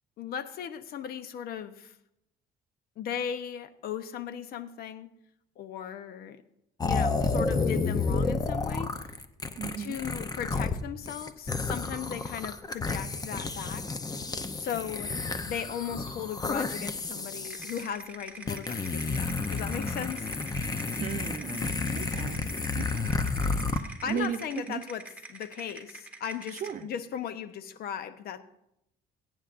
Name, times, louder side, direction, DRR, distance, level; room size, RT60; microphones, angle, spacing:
voice 1, 0.2-2.0 3.0-5.1 5.6-6.4 6.8-8.9 9.8-13.9 14.6-15.1 15.5-20.3 24.0-25.0 25.3-28.4, left 8 dB, 65° left, 12 dB, 0.8 m, -37 dB
sound 1, 6.8-10.8 11.1-17.8 18.5-23.8, left 4 dB, 20° left, 0.7 m, -31 dB
voice 2, 9.6-10.0 21.0-22.5 22.7-23.1 23.5-24.8 26.5-26.9, right 8 dB, 50° right, 10 dB, 0.7 m, -36 dB
sound 2, 17.4-26.8, right 3 dB, 10° right, 1.7 m, -45 dB
22.0 x 9.1 x 2.6 m, 0.81 s
cardioid pair, 110°, 17 cm